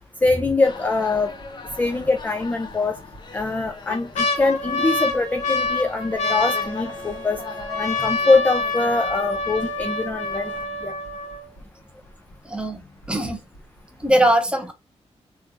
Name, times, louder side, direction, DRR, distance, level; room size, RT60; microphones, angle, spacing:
voice 1, 0.2-1.3 1.8-2.9 3.3-7.4 7.8-10.5 10.8-10.9, left 3 dB, 15° left, 0.4 m, -23 dB
sound 1, 0.6-10.6, left 3 dB, 40° left, 0.8 m, -40 dB
sound 2, 0.7-1.2 1.7-1.8 2.7-3.2 3.6-11.6 12.3-12.4 12.6-13.1 13.5-13.6, left 2 dB, 90° left, 1.3 m, -27 dB
voice 2, 12.4-12.8 13.1-13.5 14.0-14.7, right 1 dB, 10° right, 0.9 m, -21 dB
3.2 x 3.1 x 2.4 m
wide cardioid pair, 140°, 11 cm